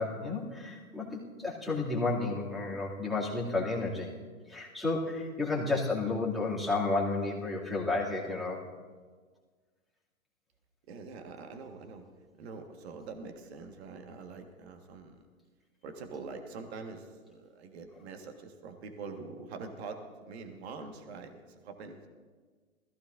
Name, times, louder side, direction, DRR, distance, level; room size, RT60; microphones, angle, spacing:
voice 1, 0.0-4.1 4.5-8.6, left 3 dB, ahead, -4 dB, 2.6 m, -32 dB
voice 2, 10.9-12.0 12.4-15.2 15.8-22.1, right 4 dB, 50° right, 5 dB, 1.7 m, -44 dB
20.5 x 15.0 x 2.6 m, 1.5 s
figure-of-eight pair, 115°, 42 cm